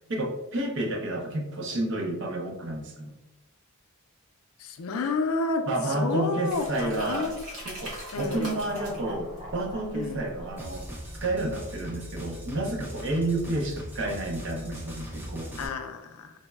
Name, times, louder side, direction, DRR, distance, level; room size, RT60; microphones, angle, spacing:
voice 1, 0.1-3.1 5.7-7.3 7.6-10.9 11.1-15.6, right 2 dB, 55° right, 1 dB, 0.5 m, -30 dB
voice 2, 4.6-7.3 8.1-8.5 9.9-10.2 13.1-13.2 15.6-16.3, left 3 dB, 80° left, 6 dB, 0.4 m, -30 dB
sound 1, 6.5-11.1, equal, 85° right, 1.1 m, -42 dB
sound 2, 8.4-11.8 12.1-12.2, left 1 dB, 30° right, 0.9 m, -45 dB
sound 3, 10.6-15.7, equal, 10° right, 0.3 m, -39 dB
3.9 x 2.0 x 2.2 m, 0.97 s
head